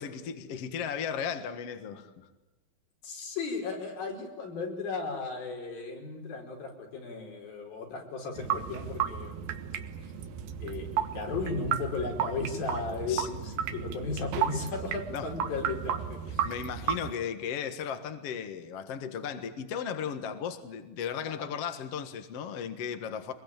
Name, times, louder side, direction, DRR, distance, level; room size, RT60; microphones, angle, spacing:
voice 1, 0.0-2.1 13.1-13.3 15.1-15.3 16.4-23.3, left 7 dB, 50° left, 8 dB, 2.2 m, -35 dB
voice 2, 3.0-9.6 10.6-16.5 21.2-21.5, left 4 dB, 75° left, 2 dB, 6.7 m, -35 dB
sound 1, 8.4-17.1, right 9 dB, 75° right, 3.2 m, -33 dB
25.0 x 22.0 x 9.0 m, 1.1 s
omnidirectional pair, 4.2 m